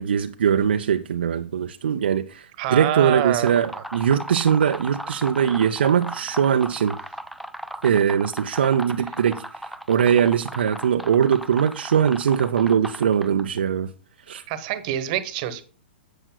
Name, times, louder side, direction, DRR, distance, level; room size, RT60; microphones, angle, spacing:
voice 1, 0.0-7.0 7.8-9.4 9.9-13.9 14.3-14.4, right 8 dB, 70° right, 0.5 m, -21 dB
voice 2, 2.6-3.8 14.5-15.6, right 11 dB, 45° right, 1.1 m, -26 dB
sound 1, 3.4-13.6, right 1 dB, ahead, 0.4 m, -37 dB
11.0 x 7.8 x 2.2 m
figure-of-eight pair, 115°, 6 cm